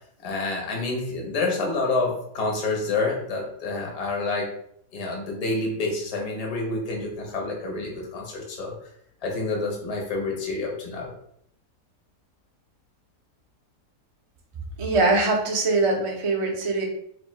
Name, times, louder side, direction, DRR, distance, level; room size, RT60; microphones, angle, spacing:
voice 1, 0.2-4.5 4.9-8.7 9.2-11.1, left 3 dB, 30° left, -1 dB, 0.7 m, -28 dB
voice 2, 14.8-16.8, right 3 dB, 40° right, 0 dB, 0.4 m, -22 dB
3.2 x 2.7 x 4.2 m, 0.70 s
omnidirectional pair, 1.7 m